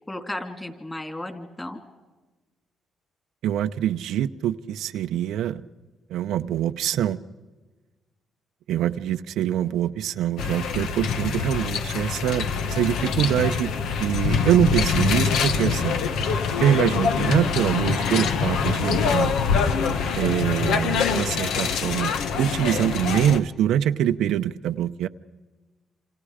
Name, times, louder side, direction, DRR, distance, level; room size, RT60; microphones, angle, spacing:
voice 1, 0.1-1.8, left 1 dB, 15° left, 7 dB, 3.2 m, -34 dB
voice 2, 3.4-5.6 6.1-7.2 8.7-13.7 14.0-15.9 16.6-19.3 20.2-22.1 22.4-25.1, right 11 dB, 85° right, 9 dB, 0.7 m, -24 dB
sound 1, 10.4-23.4, left 6 dB, 80° left, 1.3 m, -24 dB
28.0 x 27.0 x 5.0 m, 1.2 s
cardioid pair, 90°, 0 cm